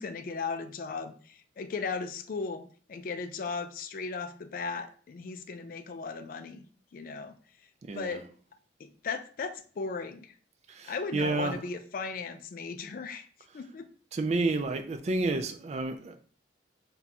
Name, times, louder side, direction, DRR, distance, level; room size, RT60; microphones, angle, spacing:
voice 1, 0.0-6.7 6.9-7.3 7.9-8.2 8.8-10.3 10.8-13.3 13.5-13.9, left 4 dB, 50° left, 0.3 m, -36 dB
voice 2, 7.8-8.2 10.7-11.6 14.1-16.2, right 3 dB, 35° right, 0.3 m, -30 dB
2.7 x 2.3 x 4.0 m
head